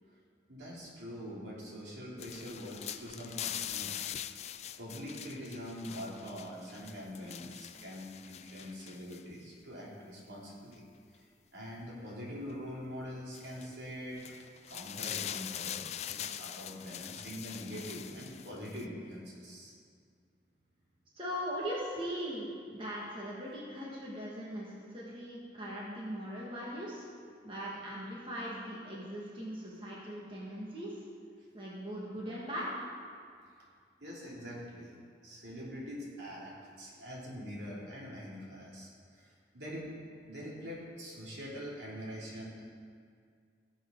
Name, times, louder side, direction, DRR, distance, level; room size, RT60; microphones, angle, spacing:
voice 1, 0.5-4.0 4.2-4.4 4.8-10.8 11.1-11.3 11.5-14.2 14.7-19.7 34.0-35.0 35.2-39.9 40.3-42.6, equal, 75° right, -5 dB, 3.1 m, -44 dB
sound 1, 2.2-9.2 10.7-10.8 13.3-13.7 14.2-18.9, left 10 dB, 40° left, 0.3 m, -43 dB
voice 2, 21.2-27.1 27.4-31.0 31.5-32.8, equal, 30° right, -6 dB, 1.9 m, -40 dB
18.0 x 7.6 x 4.0 m, 2.1 s
head